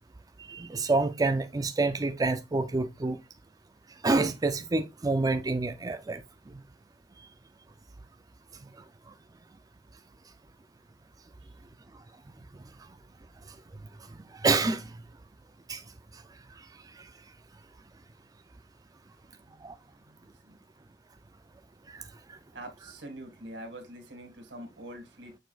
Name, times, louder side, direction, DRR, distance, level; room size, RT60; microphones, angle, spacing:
voice 1, 0.4-3.2 4.0-6.2 14.1-14.9 15.7-15.8 19.6-19.7 21.9-22.0, right 3 dB, 20° right, 0.4 m, -27 dB
voice 2, 19.2-20.6 22.5-25.4, right 1 dB, 80° right, 2.1 m, -46 dB
6.9 x 6.0 x 2.4 m
head